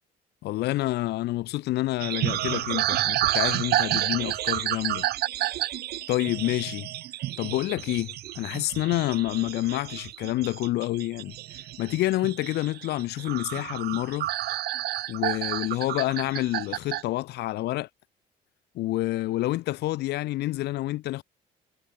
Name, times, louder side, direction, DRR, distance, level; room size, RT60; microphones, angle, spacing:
voice 1, 0.4-5.1 6.1-6.9 7.4-14.3 15.1-17.9 18.8-21.2, left 17 dB, 80° left, 1.8 m, -28 dB
sound 1, 2.0-17.0, right 14 dB, 70° right, 1.7 m, -30 dB
cardioid pair, 110°, 17 cm